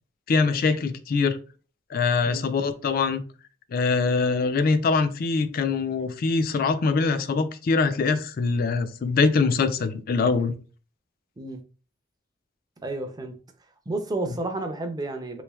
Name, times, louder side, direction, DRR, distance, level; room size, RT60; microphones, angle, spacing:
voice 1, 0.3-1.4 1.9-3.2 3.7-10.5 14.3-14.4, left 4 dB, 50° left, 10 dB, 0.3 m, -23 dB
voice 2, 12.8-13.3 13.9-15.4, right 2 dB, 20° right, 6 dB, 0.4 m, -31 dB
3.4 x 3.1 x 2.3 m, 0.37 s
head